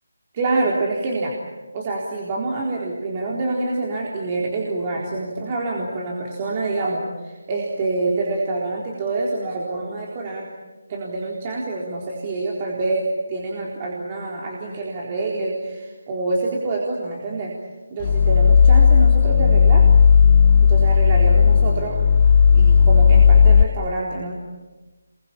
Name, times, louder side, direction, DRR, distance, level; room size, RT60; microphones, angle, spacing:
voice 1, 0.3-1.3 1.7-10.5 10.9-17.5 17.9-19.9 20.6-22.0 22.5-24.3, right 2 dB, 30° right, -2 dB, 4.0 m, -26 dB
sound 1, 18.0-23.6, left 6 dB, 35° left, 0.9 m, -13 dB
28.5 x 23.0 x 8.7 m, 1.2 s
figure-of-eight pair, 160°, 0 cm